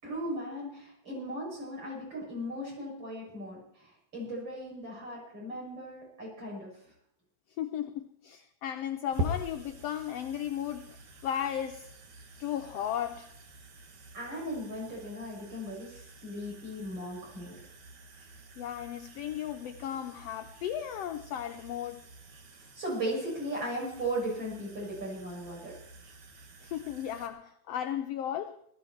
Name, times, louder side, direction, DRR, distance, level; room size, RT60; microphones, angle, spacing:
voice 1, 0.0-6.7 14.1-17.7 22.8-25.7, right 1 dB, 35° right, -4 dB, 7.7 m, -37 dB
voice 2, 7.6-11.0 11.2-11.9 12.4-13.3 18.6-22.0 26.6-28.6, left 10 dB, 75° left, 7 dB, 1.5 m, -35 dB
sound 1, 9.1-27.3, equal, 70° right, 3.2 m, -45 dB
18.0 x 14.0 x 4.5 m, 0.72 s
omnidirectional pair, 3.5 m